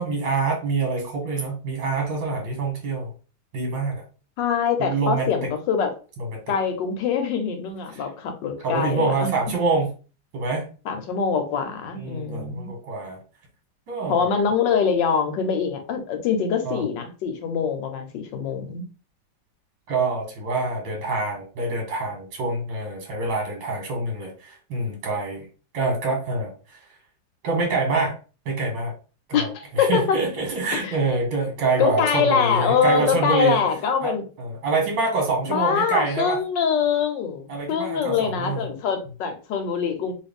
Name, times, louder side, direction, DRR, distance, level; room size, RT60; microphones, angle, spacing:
voice 1, 0.0-3.1 3.5-4.0 4.8-5.5 6.3-6.6 7.9-8.1 8.6-10.0 10.3-10.7 11.9-13.2 13.9-14.3 16.6-16.8 19.9-25.5 25.7-26.9 27.4-28.1 28.5-28.9 29.3-33.6 34.0-36.4 37.5-38.7, right 3 dB, 75° right, 1 dB, 1.8 m, -26 dB
voice 2, 4.4-5.9 6.5-9.3 10.8-12.7 14.1-18.8 29.3-30.2 30.7-31.0 31.8-34.2 35.5-40.1, left 6 dB, 75° left, 6 dB, 1.4 m, -24 dB
3.2 x 3.0 x 3.4 m, 0.35 s
omnidirectional pair, 2.0 m